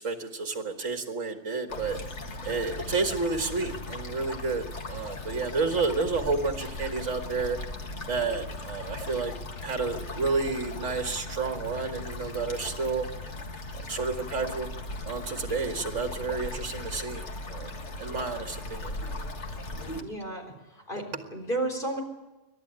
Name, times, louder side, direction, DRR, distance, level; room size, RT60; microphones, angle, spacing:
voice 1, 0.0-2.0 2.4-7.6 8.1-13.1 13.7-14.7 15.1-19.0 19.7-20.0, right 4 dB, 70° right, 4 dB, 2.0 m, -31 dB
sound 1, 1.7-20.0, left 2 dB, 65° left, 2.0 m, -38 dB
voice 2, 20.0-20.4 20.7-22.0, right 2 dB, 40° left, 3 dB, 4.3 m, -32 dB
28.5 x 12.5 x 8.9 m, 1.0 s
omnidirectional pair, 1.3 m